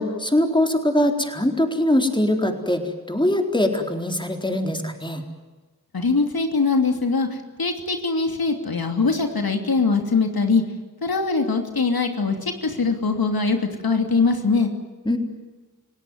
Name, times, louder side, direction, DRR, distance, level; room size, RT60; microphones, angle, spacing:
voice 1, 0.0-2.8 3.1-5.2 15.0-15.2, left 1 dB, 15° left, 4 dB, 4.1 m, -22 dB
voice 2, 5.9-10.6 11.0-13.6 13.8-14.7, left 4 dB, 80° left, 5 dB, 2.9 m, -22 dB
30.0 x 17.5 x 9.5 m, 1.3 s
wide cardioid pair, 55°, 36 cm